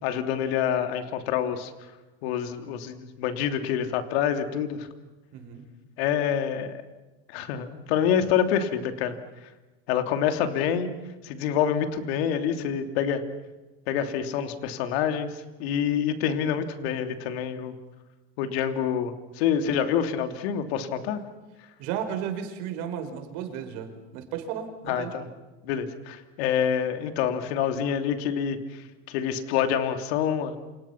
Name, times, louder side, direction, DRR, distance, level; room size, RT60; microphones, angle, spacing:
voice 1, 0.0-1.7 2.2-4.9 6.0-6.8 7.3-9.2 9.9-10.9 11.2-13.2 13.9-17.7 18.4-21.2 24.9-25.2 25.6-30.6, left 8 dB, 75° left, 7 dB, 3.1 m, -27 dB
voice 2, 5.3-5.7 21.8-25.1, right 8 dB, 65° right, 6 dB, 5.5 m, -34 dB
29.5 x 27.5 x 6.0 m, 1.1 s
supercardioid pair, 135°, 31 cm